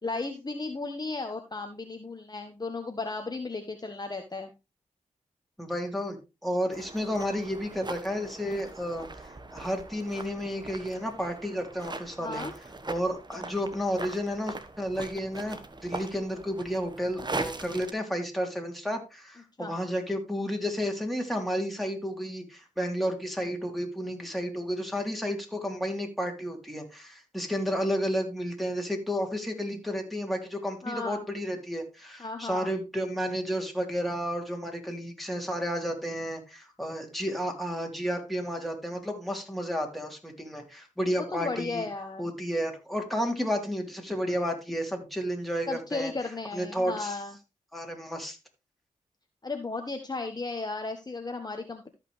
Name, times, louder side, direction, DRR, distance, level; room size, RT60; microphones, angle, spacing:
voice 1, 0.0-4.5 12.2-12.5 19.6-19.8 30.8-31.2 32.2-32.7 41.2-42.2 45.7-47.3 49.4-51.9, left 3 dB, 30° left, 5 dB, 1.3 m, -35 dB
voice 2, 5.6-12.5 12.9-41.9 42.2-46.1 46.5-47.2 47.7-48.4, equal, ahead, 2 dB, 3.3 m, -32 dB
sound 1, 6.7-17.9, right 2 dB, 30° right, 1.3 m, -40 dB
13.5 x 5.9 x 3.2 m, 0.27 s
cardioid pair, 45°, 14 cm